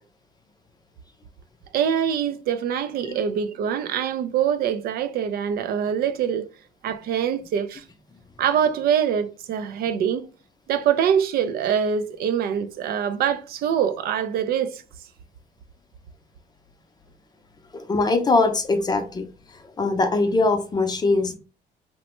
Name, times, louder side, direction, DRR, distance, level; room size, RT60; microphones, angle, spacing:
voice 1, 1.7-6.4 6.8-7.8 8.4-10.3 10.7-14.8, right 8 dB, 65° right, 0.4 m, -24 dB
voice 2, 17.7-19.3 19.8-21.4, left 3 dB, 25° left, 0.5 m, -21 dB
3.0 x 2.1 x 3.0 m
cardioid pair, 110°, 17 cm